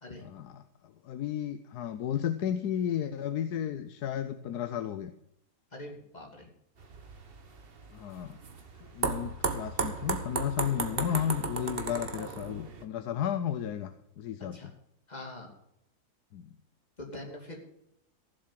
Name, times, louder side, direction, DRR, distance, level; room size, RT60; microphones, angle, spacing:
voice 1, 0.2-5.1 7.9-8.4 8.8-14.7 16.3-16.5, left 9 dB, 80° left, 10 dB, 1.3 m, -33 dB
voice 2, 5.7-6.5 14.5-14.7 15.1-15.5 17.0-17.6, left 1 dB, 25° left, 1 dB, 2.9 m, -43 dB
sound 1, 6.8-12.8, right 4 dB, 40° right, 1.4 m, -35 dB
15.5 x 7.5 x 7.4 m, 0.78 s
omnidirectional pair, 1.7 m